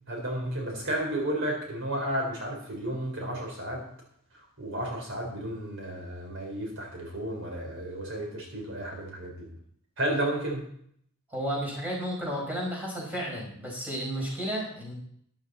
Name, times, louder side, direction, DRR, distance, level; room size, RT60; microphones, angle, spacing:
voice 1, 0.1-3.8 4.6-9.5 10.0-10.6, right 1 dB, 60° right, 1 dB, 4.0 m, -32 dB
voice 2, 11.3-14.9, equal, 10° right, -3 dB, 5.3 m, -32 dB
13.0 x 11.5 x 4.2 m, 0.65 s
head